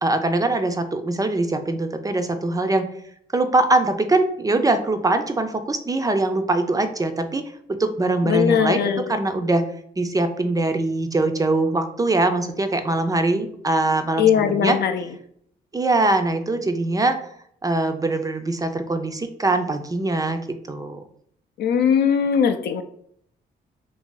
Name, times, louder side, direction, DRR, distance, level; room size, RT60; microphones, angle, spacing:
voice 1, 0.0-2.9 3.3-7.4 7.7-9.6 10.0-14.8 15.7-17.2 17.6-20.4 20.7-21.0, right 2 dB, 20° right, 7 dB, 0.4 m, -22 dB
voice 2, 8.2-9.1 14.2-15.1 21.6-22.8, left 8 dB, 65° left, 7 dB, 0.4 m, -20 dB
2.7 x 2.6 x 3.7 m, 0.67 s
cardioid pair, 85°, 19 cm